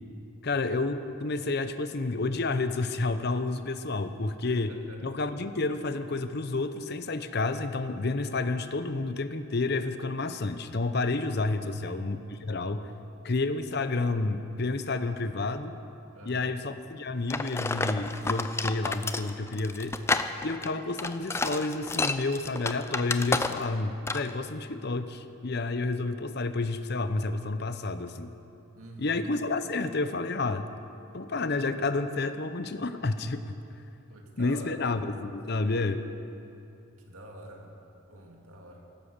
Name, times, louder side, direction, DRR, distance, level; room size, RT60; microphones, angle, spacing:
voice 1, 0.4-12.8 13.2-15.7 16.2-20.0 20.4-28.3 29.0-30.7 31.1-33.5 34.4-36.1, left 3 dB, 50° left, 10 dB, 0.7 m, -30 dB
voice 2, 4.7-5.2 11.6-12.0 16.1-16.6 28.8-29.1 34.1-34.7 37.1-37.8 38.1-38.9, right 1 dB, 90° right, 1 dB, 2.3 m, -47 dB
sound 1, 17.3-23.8 24.1-24.3, left 3 dB, 10° left, 0.4 m, -30 dB
16.0 x 12.5 x 6.7 m, 2.8 s
head